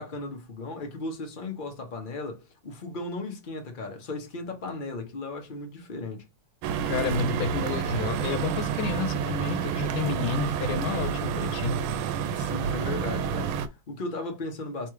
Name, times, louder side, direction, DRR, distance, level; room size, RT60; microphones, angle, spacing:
voice 1, 0.0-6.2 12.3-14.9, left 2 dB, 70° left, 0.4 m, -36 dB
sound 1, 6.6-13.7, right 7 dB, 90° right, 1.4 m, -29 dB
voice 2, 6.8-11.8, left 6 dB, 85° left, 1.4 m, -30 dB
3.4 x 3.0 x 4.7 m
omnidirectional pair, 2.2 m